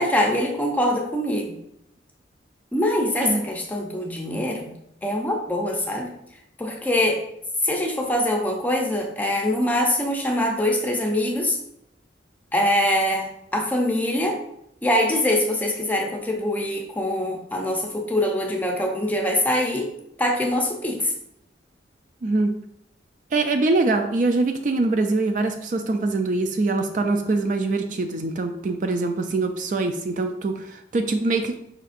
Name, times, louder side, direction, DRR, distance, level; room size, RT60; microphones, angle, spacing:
voice 1, 0.0-1.6 2.7-4.7 5.0-6.1 6.6-7.2 7.6-11.6 12.5-14.4 14.8-19.9 20.2-21.1, left 1 dB, 10° left, 1 dB, 0.6 m, -23 dB
voice 2, 23.3-31.5, right 3 dB, 45° right, 6 dB, 0.3 m, -23 dB
5.1 x 4.1 x 2.5 m, 0.77 s
head